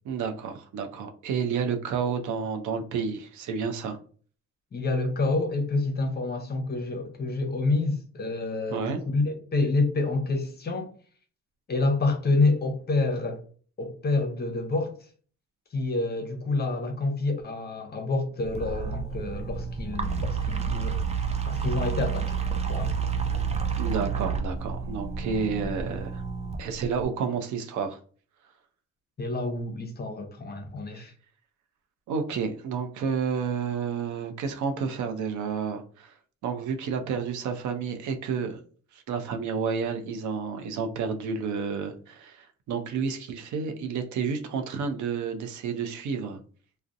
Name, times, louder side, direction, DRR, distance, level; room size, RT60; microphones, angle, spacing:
voice 1, 0.1-4.0 8.7-9.0 23.8-26.2 26.6-28.0 30.9-31.0 32.1-36.1 36.4-38.6 38.9-46.4, right 6 dB, 75° right, 0.5 m, -30 dB
voice 2, 4.7-10.9 11.7-13.4 13.8-15.1 15.7-22.3 22.7-22.9 29.2-31.1, left 3 dB, 35° left, 0.6 m, -28 dB
sound 1, 18.4-27.1, right 6 dB, 20° right, 0.4 m, -30 dB
2.6 x 2.0 x 2.4 m
cardioid pair, 90°, 30 cm